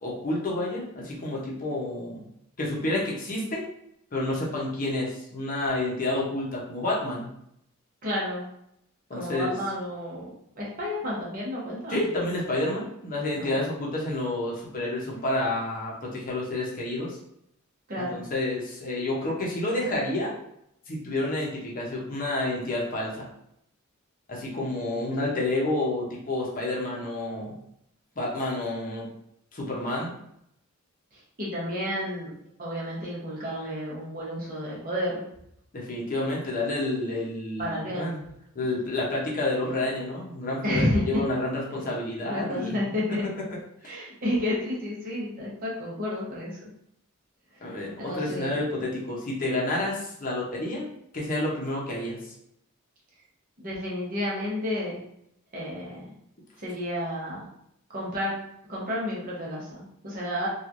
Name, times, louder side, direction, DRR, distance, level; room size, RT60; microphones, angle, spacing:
voice 1, 0.0-2.2 2.6-3.7 4.1-7.3 9.1-9.5 11.9-17.2 18.1-20.3 20.9-23.3 24.3-27.6 28.2-29.1 29.5-30.1 35.7-38.3 38.5-42.8 47.6-52.3, left 2 dB, 40° left, -3 dB, 0.7 m, -29 dB
voice 2, 8.0-8.5 9.1-11.9 13.4-13.5 17.9-18.2 31.1-32.3 32.6-35.2 37.6-38.1 40.6-41.2 41.7-43.3 43.8-46.7 47.5-48.6 53.6-55.0 55.5-56.1 56.6-57.5 57.9-58.3 58.7-60.5, left 1 dB, 40° right, -5 dB, 0.9 m, -31 dB
3.0 x 2.3 x 2.5 m, 0.75 s
head